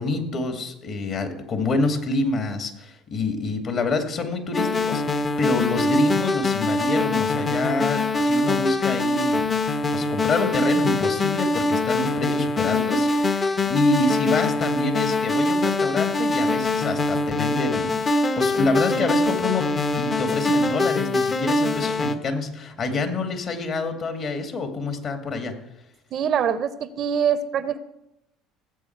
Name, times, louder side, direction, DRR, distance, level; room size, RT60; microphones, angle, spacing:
voice 1, 0.0-9.5 9.9-17.9 18.4-19.7 20.0-25.6, left 3 dB, 45° left, 6 dB, 2.2 m, -27 dB
sound 1, 4.5-22.2, left 2 dB, 30° left, 1.0 m, -23 dB
voice 2, 26.1-27.8, right 8 dB, 50° right, 15 dB, 0.8 m, -24 dB
17.0 x 7.7 x 4.6 m, 0.89 s
hypercardioid pair, 65°, 0 cm